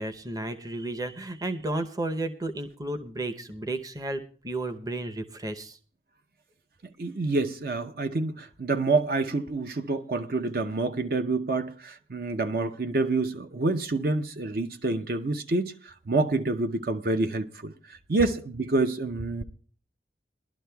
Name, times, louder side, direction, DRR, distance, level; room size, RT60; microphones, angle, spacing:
voice 1, 0.0-5.8, right 2 dB, 20° right, 0.7 m, -33 dB
voice 2, 7.0-19.4, right 3 dB, 55° right, 0.7 m, -27 dB
21.5 x 12.0 x 2.3 m
head